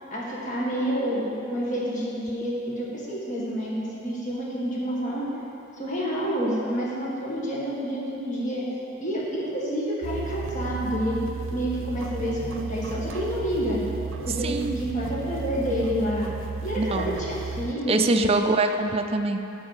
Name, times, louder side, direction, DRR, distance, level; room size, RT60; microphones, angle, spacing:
voice 1, 0.1-5.2 5.8-8.6 9.0-13.8 14.2-16.3 16.6-18.4, equal, 40° left, -6 dB, 1.8 m, -28 dB
sound 1, 10.0-17.7, right 5 dB, 75° right, 0.5 m, -34 dB
voice 2, 14.4-14.8 16.8-17.2 17.9-19.4, right 3 dB, 30° right, 5 dB, 0.4 m, -24 dB
11.5 x 4.5 x 7.2 m, 2.8 s
head